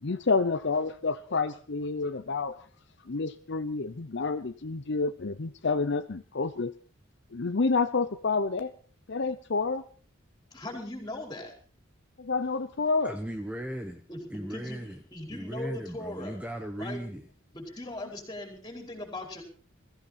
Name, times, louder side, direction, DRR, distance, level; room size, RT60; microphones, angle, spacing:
voice 1, 0.0-2.6 3.1-6.7 7.3-8.7 9.1-9.8 12.2-13.1, left 4 dB, 55° left, 10 dB, 0.7 m, -29 dB
voice 2, 10.5-11.5 14.1-16.4 16.8-17.0 17.5-19.4, left 1 dB, 20° left, 2 dB, 5.0 m, -39 dB
voice 3, 13.0-14.0 14.3-17.3, equal, 5° right, 5 dB, 1.0 m, -37 dB
21.5 x 15.0 x 4.3 m, 0.41 s
head